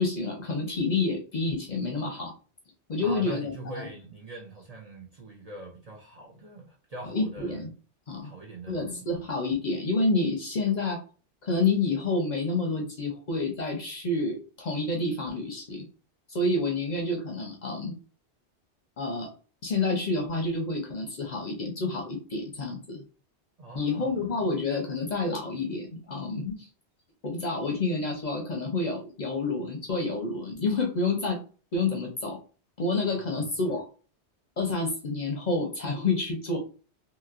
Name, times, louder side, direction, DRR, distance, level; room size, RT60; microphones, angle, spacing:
voice 1, 0.0-2.3 2.9-3.8 7.1-7.7 8.1-8.3 8.7-11.0 11.4-15.9 16.3-17.9 19.0-19.3 19.6-23.0 23.7-26.7 27.2-31.4 31.7-32.4 32.8-33.8 34.6-36.6, left 3 dB, 45° left, 2 dB, 0.7 m, -29 dB
voice 2, 3.0-7.7 8.2-9.2 23.6-24.3 33.2-33.7, right 2 dB, 45° right, -1 dB, 0.5 m, -43 dB
2.8 x 2.8 x 2.4 m, 0.37 s
omnidirectional pair, 1.1 m